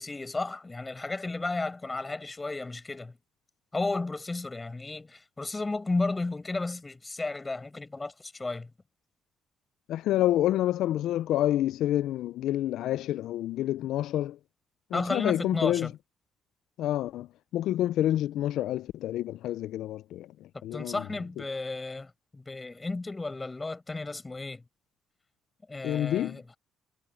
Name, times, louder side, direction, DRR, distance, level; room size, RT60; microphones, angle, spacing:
voice 1, 0.0-3.1 3.7-8.7 14.9-15.9 20.7-24.6 25.7-26.4, left 3 dB, 20° left, 7.4 m, -33 dB
voice 2, 9.9-14.4 14.9-15.9 16.8-17.3 17.5-20.3 20.6-20.9 25.8-26.4, left 13 dB, 85° left, 0.4 m, -28 dB
cardioid pair, 90°, 0 cm